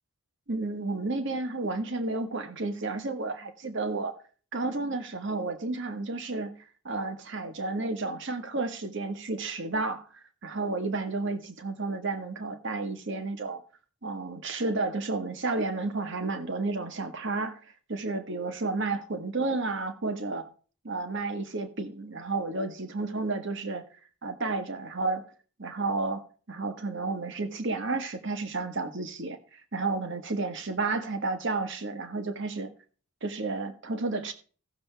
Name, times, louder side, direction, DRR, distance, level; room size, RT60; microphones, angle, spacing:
voice 1, 0.5-4.1 4.5-6.5 6.8-13.6 14.0-17.6 17.9-20.5 20.8-23.9 24.2-25.2 25.6-32.7 33.2-34.3, right 3 dB, 55° right, 1.3 m, -31 dB
16.0 x 6.9 x 3.4 m
head